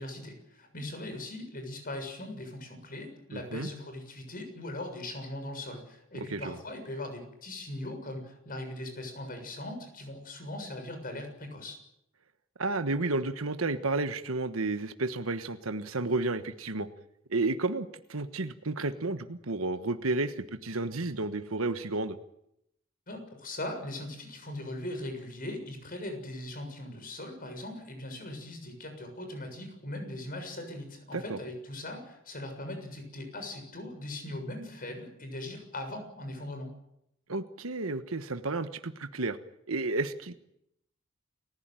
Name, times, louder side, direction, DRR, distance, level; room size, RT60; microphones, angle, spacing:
voice 1, 0.0-11.8 23.1-36.7, left 1 dB, 45° left, 6 dB, 7.0 m, -40 dB
voice 2, 3.3-3.7 6.2-6.6 12.6-16.9 17.3-22.2 31.1-31.4 37.3-39.4 39.7-40.3, right 3 dB, 90° right, 10 dB, 1.3 m, -32 dB
29.0 x 16.0 x 9.2 m, 0.80 s
head